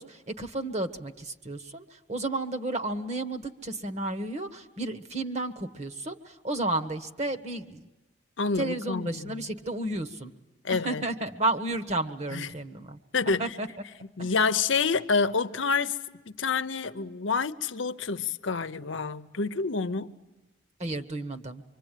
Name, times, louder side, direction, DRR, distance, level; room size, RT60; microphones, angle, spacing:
voice 1, 0.0-7.9 8.6-10.3 10.7-13.0 13.4-13.7 14.2-14.3 20.8-21.6, right 2 dB, 35° right, 1.3 m, -32 dB
voice 2, 8.4-9.4 10.6-11.0 12.3-12.5 13.1-13.5 14.2-16.0 16.4-20.2, left 4 dB, 75° left, 0.9 m, -28 dB
26.0 x 24.5 x 9.2 m
head